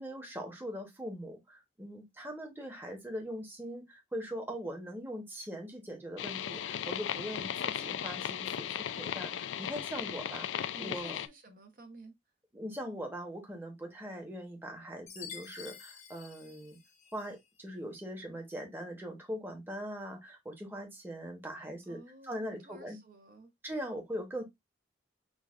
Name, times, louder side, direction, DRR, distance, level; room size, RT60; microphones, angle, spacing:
voice 1, 0.0-11.2 12.5-16.8 17.1-23.0 23.6-24.4, equal, 10° right, 0.9 m, -41 dB
sound 1, 6.2-11.3, left 9 dB, 85° left, 0.3 m, -36 dB
voice 2, 10.7-12.1 21.9-23.5, right 2 dB, 50° right, 0.7 m, -52 dB
Chime, 15.1-17.4, left 7 dB, 40° left, 0.6 m, -49 dB
6.2 x 2.3 x 2.4 m
head